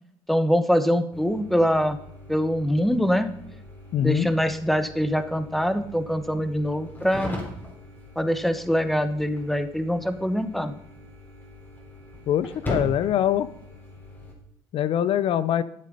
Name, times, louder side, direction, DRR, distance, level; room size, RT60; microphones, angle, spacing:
voice 1, 0.3-2.0 2.3-3.3 4.0-7.4 8.2-10.7, equal, ahead, 11 dB, 1.0 m, -24 dB
sound 1, 1.1-14.3, left 1 dB, 20° left, 3.4 m, -40 dB
voice 2, 3.9-4.3 12.3-13.5 14.7-15.6, left 10 dB, 65° left, 16 dB, 0.6 m, -23 dB
12.0 x 7.7 x 5.3 m, 0.74 s
cardioid pair, 95°, 10 cm